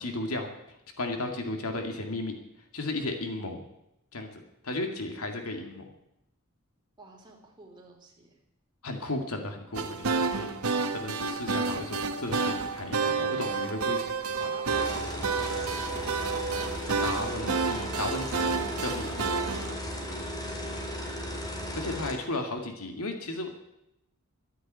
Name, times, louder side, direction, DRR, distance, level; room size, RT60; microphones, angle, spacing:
voice 1, 0.0-2.3 2.7-3.6 4.1-5.9 8.8-10.6 10.9-14.0 17.0-19.1 21.8-23.6, left 2 dB, 85° left, 4 dB, 2.2 m, -35 dB
voice 2, 7.0-8.4 13.4-13.8 14.4-15.8 19.5-21.0, right 2 dB, 20° right, -1 dB, 3.3 m, -52 dB
sound 1, 9.7-19.7, right 4 dB, 90° right, 1.2 m, -30 dB
sound 2, 14.7-22.1, equal, 20° left, 2.8 m, -36 dB
12.5 x 9.9 x 9.0 m, 0.85 s
head